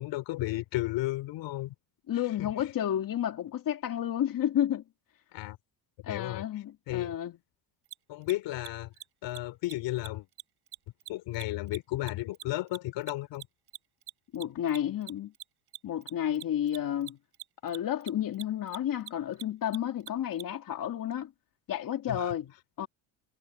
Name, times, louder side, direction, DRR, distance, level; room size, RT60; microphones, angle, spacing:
voice 1, 0.0-1.7 5.3-5.6 6.1-6.4 6.9-7.1 8.1-8.9 9.2-10.3 11.1-13.5 22.1-22.3, left 17 dB, 70° left, 3.4 m, -33 dB
voice 2, 2.1-4.8 6.0-7.4 14.3-15.3 15.8-17.2 17.6-21.3 21.7-22.9, left 10 dB, 45° left, 2.4 m, -31 dB
Mechanisms, 7.8-7.9 8.2-8.3 8.6-8.7 8.9-9.0 9.3-9.4 9.6-9.7 10.0-10.1 10.4-13.1 13.3-20.4, right 14 dB, 55° right, 7.9 m, -43 dB
cardioid pair, 110°, 46 cm